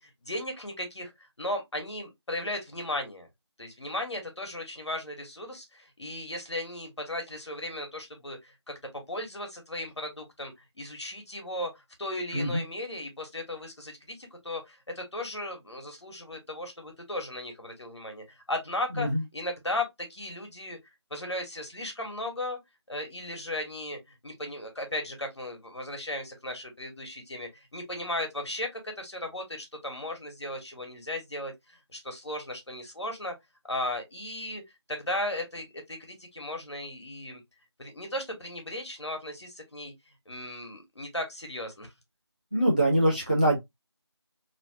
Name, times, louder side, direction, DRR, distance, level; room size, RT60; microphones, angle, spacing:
voice 1, 0.0-3.3 3.6-20.8 21.1-22.6 22.9-33.3 33.7-34.6 34.9-37.4 37.8-39.9 40.3-41.9, left 1 dB, 70° left, 1.4 m, -36 dB
voice 2, 12.3-12.6 18.9-19.2 42.5-43.6, right 1 dB, 15° right, 0.7 m, -24 dB
3.0 x 2.5 x 2.8 m
figure-of-eight pair, 175°, 15 cm